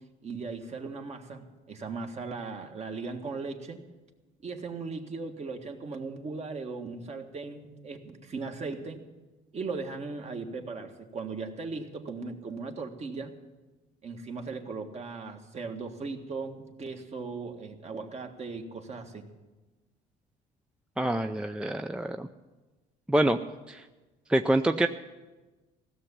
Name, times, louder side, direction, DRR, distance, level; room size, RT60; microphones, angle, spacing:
voice 1, 0.2-3.8 4.4-9.0 9.5-13.3 14.0-19.3, right 4 dB, 40° right, 4 dB, 1.7 m, -38 dB
voice 2, 21.0-22.3 23.1-23.4 23.7-23.9 24.3-24.9, right 1 dB, 5° right, 7 dB, 0.4 m, -26 dB
16.0 x 7.0 x 9.9 m, 1.2 s
cardioid pair, 110°, 17 cm